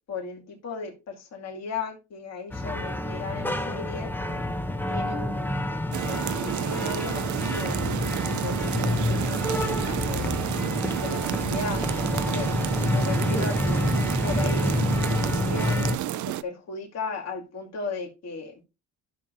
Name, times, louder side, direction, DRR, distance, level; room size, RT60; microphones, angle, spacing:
voice 1, 0.1-4.1 4.9-5.8 6.0-7.8 8.4-10.3 11.0-12.5 12.9-13.9 14.2-14.8 15.2-15.9 16.2-18.6, left 4 dB, 60° left, 2.5 m, -36 dB
sound 1, 2.5-16.0, left 1 dB, 5° left, 0.9 m, -28 dB
sound 2, 5.9-16.4, right 13 dB, 75° right, 0.6 m, -30 dB
13.0 x 6.4 x 2.7 m
cardioid pair, 90°, 30 cm